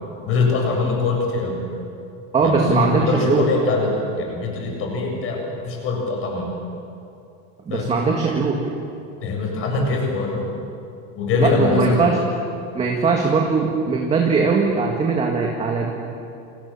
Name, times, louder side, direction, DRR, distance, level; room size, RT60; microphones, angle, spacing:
voice 1, 0.3-1.6 2.4-6.5 7.7-7.9 9.2-10.5 11.2-12.0, left 3 dB, 30° left, 1 dB, 7.4 m, -23 dB
voice 2, 2.3-3.5 7.7-8.6 11.4-12.2 12.7-15.9, right 4 dB, 15° right, 0 dB, 2.0 m, -20 dB
29.0 x 27.5 x 7.3 m, 2.6 s
supercardioid pair, 175°, 40 cm